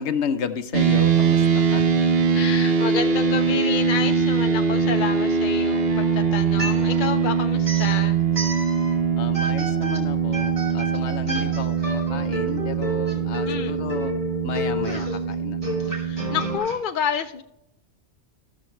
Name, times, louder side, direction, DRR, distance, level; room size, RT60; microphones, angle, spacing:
voice 1, 0.0-1.9 6.5-6.9 9.2-14.1 14.4-15.8, left 6 dB, 75° left, 10 dB, 1.0 m, -32 dB
sound 1, 0.7-16.6, right 6 dB, 60° right, 1.1 m, -22 dB
voice 2, 2.3-8.2 11.3-11.5 13.5-13.8 15.8-17.4, left 7 dB, 55° left, 6 dB, 0.6 m, -29 dB
sound 2, 5.9-7.2 7.6-9.0 9.3-16.8, equal, 40° right, 2.6 m, -32 dB
14.5 x 6.7 x 3.2 m, 0.82 s
omnidirectional pair, 1.2 m